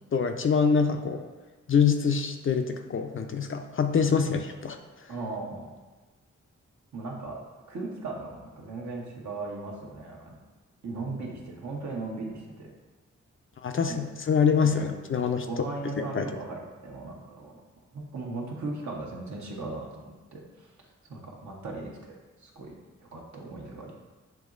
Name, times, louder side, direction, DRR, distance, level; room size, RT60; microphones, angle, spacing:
voice 1, 0.1-1.2 1.7-4.8 13.6-15.5 16.0-16.3, left 6 dB, 45° left, 6 dB, 0.4 m, -25 dB
voice 2, 5.1-5.7 6.9-7.4 7.7-10.4 10.8-12.7 13.8-14.1 14.6-14.9 15.4-17.6 17.9-20.7 21.0-22.1 22.4-22.7 23.0-23.9, right 3 dB, 70° right, -2 dB, 1.1 m, -37 dB
7.1 x 3.0 x 2.5 m, 1.2 s
cardioid pair, 50°, 30 cm